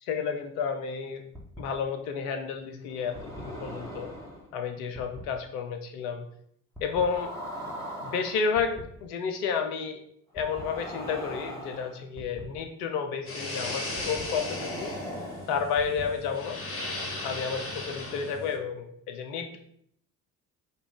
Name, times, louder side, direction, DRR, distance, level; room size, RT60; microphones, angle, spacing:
voice 1, 0.0-1.3 1.6-4.1 4.5-6.3 6.8-7.3 8.0-10.0 10.3-14.9 15.5-16.6 17.2-19.6, left 6 dB, 60° left, 6 dB, 0.8 m, -31 dB
sound 1, 1.3-1.6 2.9-4.5 4.9-5.2 6.7-8.8 10.4-12.4 14.0-16.0, equal, 5° left, 1.2 m, -40 dB
sound 2, 13.3-18.6, left 2 dB, 25° left, 1.0 m, -37 dB
5.5 x 2.3 x 3.5 m, 0.68 s
figure-of-eight pair, 50°, 49 cm